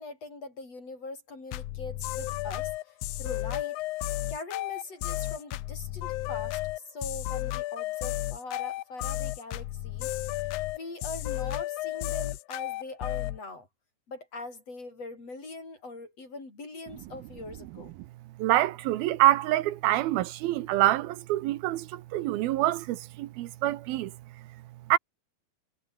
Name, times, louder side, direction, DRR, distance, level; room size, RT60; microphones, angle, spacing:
voice 1, 0.0-3.8 4.3-10.4 10.7-13.7 14.1-17.9, left 3 dB, 40° left, 8.3 m, -42 dB
sound 1, 1.5-13.4, left 17 dB, 85° left, 1.7 m, -33 dB
voice 2, 18.4-24.1 24.9-25.0, right 15 dB, 80° right, 2.7 m, -26 dB
omnidirectional pair, 4.4 m